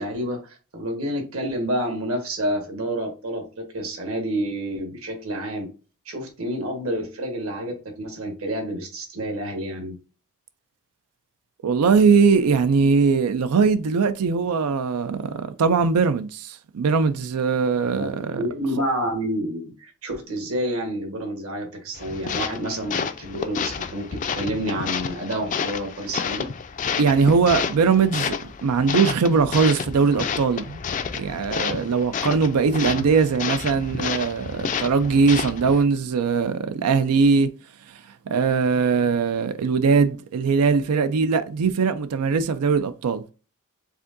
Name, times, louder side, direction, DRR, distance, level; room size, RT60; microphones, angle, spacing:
voice 1, 0.0-5.7 6.0-10.0 17.9-18.1 18.3-26.5, right 1 dB, 65° right, 1.4 m, -29 dB
voice 2, 11.6-18.4 27.0-30.8 31.1-37.5 37.9-38.0 38.3-43.2, right 5 dB, 90° right, 0.4 m, -21 dB
sound 1, 22.0-35.8, left 6 dB, 35° left, 0.3 m, -30 dB
4.8 x 3.5 x 2.5 m
head